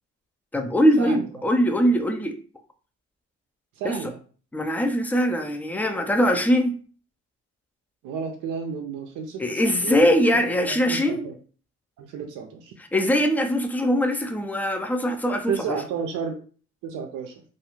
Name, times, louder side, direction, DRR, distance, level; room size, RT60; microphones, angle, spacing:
voice 1, 0.5-2.4 3.8-4.1 4.5-6.8 9.4-11.2 12.9-15.8, equal, 5° left, 6 dB, 0.4 m, -22 dB
voice 2, 3.8-4.2 8.0-9.4 9.8-11.3 12.0-12.7 15.5-16.3 16.8-17.4, right 6 dB, 90° right, 2 dB, 0.5 m, -32 dB
2.5 x 2.3 x 2.9 m, 0.41 s
cardioid pair, 90°, 30 cm